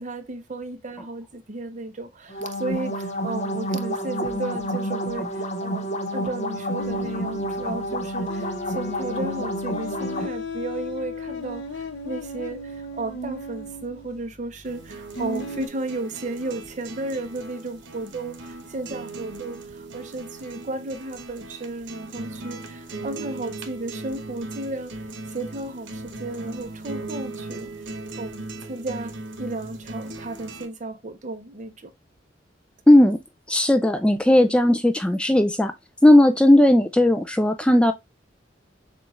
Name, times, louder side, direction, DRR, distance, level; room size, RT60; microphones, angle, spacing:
voice 1, 0.0-27.7 28.2-31.9, right 2 dB, 40° right, 0.7 m, -34 dB
sound 1, 2.3-10.3, equal, 40° left, 0.9 m, -29 dB
sound 2, 6.8-15.7, left 2 dB, 85° left, 1.0 m, -36 dB
sound 3, 14.6-30.7, right 2 dB, 85° right, 0.9 m, -38 dB
voice 2, 32.9-33.2 33.5-35.7 36.0-37.9, left 1 dB, 5° left, 0.3 m, -16 dB
6.9 x 2.4 x 3.1 m
head